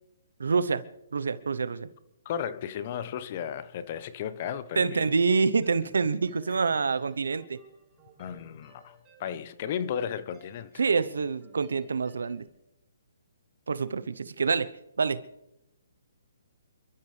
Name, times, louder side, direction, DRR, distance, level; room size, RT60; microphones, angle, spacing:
voice 1, 0.4-0.8 1.1-1.9 4.8-7.6 10.8-12.4 13.7-14.7 15.0-15.2, right 4 dB, 80° right, 0.9 m, -26 dB
voice 2, 2.2-5.1 6.5-6.6 8.2-8.9 9.2-10.7, left 8 dB, 40° left, 1.0 m, -34 dB
sound 1, 5.6-12.5, right 3 dB, 15° right, 7.5 m, -58 dB
28.0 x 13.0 x 3.4 m
hypercardioid pair, 150°, 0 cm